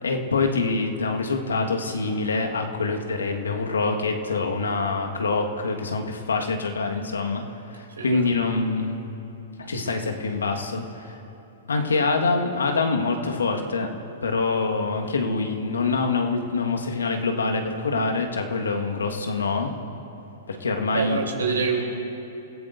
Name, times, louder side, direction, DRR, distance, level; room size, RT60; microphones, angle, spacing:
voice 1, 0.0-7.4 7.7-9.0 9.6-11.1 11.7-13.9 14.2-19.7 20.5-21.2, left 3 dB, 80° left, 3 dB, 1.5 m, -25 dB
voice 2, 7.9-8.3 20.9-21.8, right 5 dB, 80° right, 0 dB, 3.4 m, -26 dB
29.0 x 15.5 x 2.6 m, 2.8 s
hypercardioid pair, 110°, 0 cm